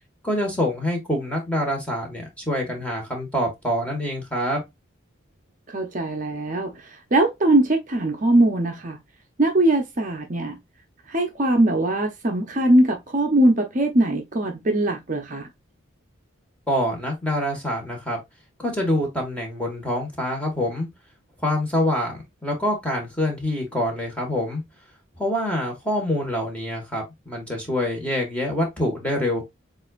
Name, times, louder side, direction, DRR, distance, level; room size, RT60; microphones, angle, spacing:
voice 1, 0.2-4.6 16.7-18.2 18.6-20.9 21.4-24.6 25.2-29.4, left 1 dB, 5° left, 1.4 m, -25 dB
voice 2, 5.7-9.0 9.4-10.6 11.1-15.5, right 1 dB, 40° right, 0.6 m, -21 dB
7.5 x 2.5 x 2.4 m
head